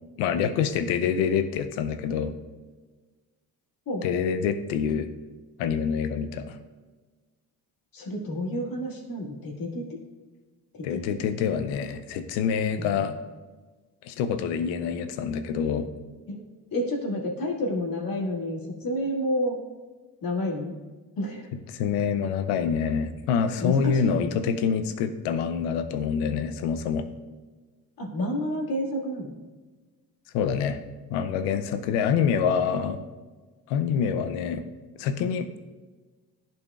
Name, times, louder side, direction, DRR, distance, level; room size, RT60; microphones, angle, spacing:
voice 1, 0.2-2.3 4.0-5.1 5.6-6.6 10.8-13.1 14.0-15.9 21.7-27.1 30.3-30.8 31.1-33.0 33.7-34.6 35.0-35.6, left 7 dB, 85° left, 10 dB, 0.6 m, -26 dB
voice 2, 7.9-9.9 10.9-11.2 12.8-13.0 16.3-16.4 16.7-19.6 20.2-20.7 21.2-21.5 23.6-24.2 28.0-29.4, left 1 dB, 55° left, -3 dB, 2.1 m, -29 dB
11.0 x 4.4 x 2.4 m, 1.3 s
supercardioid pair, 60°, 41 cm